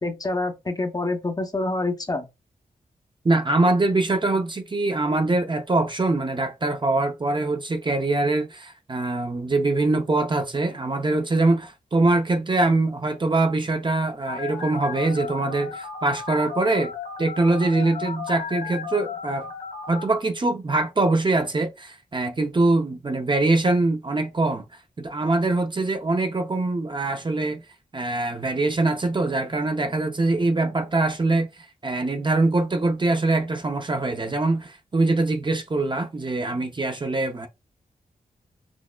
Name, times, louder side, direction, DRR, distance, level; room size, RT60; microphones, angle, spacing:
voice 1, 0.0-2.3, left 2 dB, 25° left, 0.7 m, -27 dB
voice 2, 3.2-16.9 17.2-19.5 19.9-24.6 25.0-27.6 27.9-37.5, right 2 dB, 30° right, 0.6 m, -23 dB
Telephone, 14.3-20.0, left 6 dB, 90° left, 1.9 m, -34 dB
6.1 x 2.0 x 2.2 m
cardioid pair, 65°, 16 cm